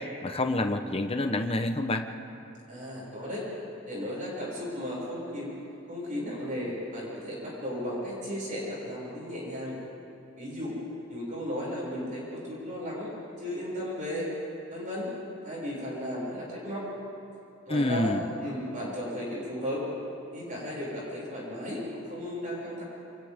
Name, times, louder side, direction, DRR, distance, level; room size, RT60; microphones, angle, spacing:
voice 1, 0.0-2.0 17.7-18.2, left 1 dB, 30° left, 6 dB, 1.0 m, -28 dB
voice 2, 2.7-3.5 3.9-5.5 5.9-9.8 10.4-10.8 11.1-13.1 13.4-14.3 14.7-15.1 15.4-16.9 17.6-19.9 20.3-22.8, equal, 40° right, -6 dB, 6.7 m, -35 dB
28.5 x 27.0 x 3.7 m, 2.8 s
head